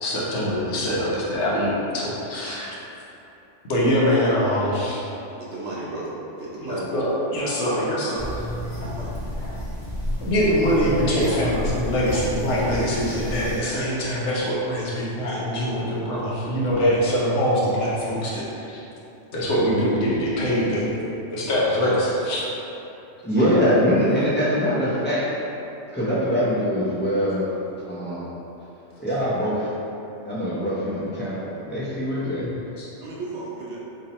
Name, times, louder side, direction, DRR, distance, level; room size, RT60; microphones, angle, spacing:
voice 1, 0.0-2.7 3.7-5.0 6.6-8.2 10.2-18.8 19.3-20.9 21.3-22.4 32.4-32.5 32.8-32.9, equal, 70° left, -6 dB, 1.1 m, -23 dB
voice 2, 5.4-6.1 6.4-6.9 8.8-9.2 12.9-13.0 23.2-23.4 33.0-33.8, right 2 dB, 70° right, -6 dB, 1.0 m, -34 dB
sound 1, 8.2-13.6, equal, 30° left, 0.9 m, -30 dB
voice 3, 23.2-25.2 25.9-27.5 27.9-28.3 29.0-29.7 30.2-32.5, equal, 15° left, -10 dB, 0.5 m, -23 dB
2.8 x 2.7 x 4.1 m, 2.9 s
omnidirectional pair, 1.3 m